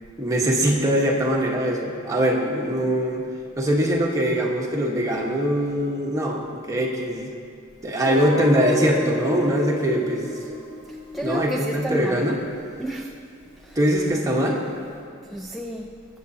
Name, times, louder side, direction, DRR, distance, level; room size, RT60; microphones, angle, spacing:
voice 1, 0.2-3.3 3.6-7.3 7.8-10.3 11.2-12.4 13.7-14.6, equal, 15° right, -2 dB, 1.2 m, -22 dB
Guitar, 8.0-12.9, left 1 dB, 55° left, 2.4 m, -32 dB
voice 2, 10.9-12.2 12.8-13.1 13.6-13.8 15.3-15.9, equal, ahead, 2 dB, 0.4 m, -31 dB
20.5 x 7.7 x 2.8 m, 2.3 s
head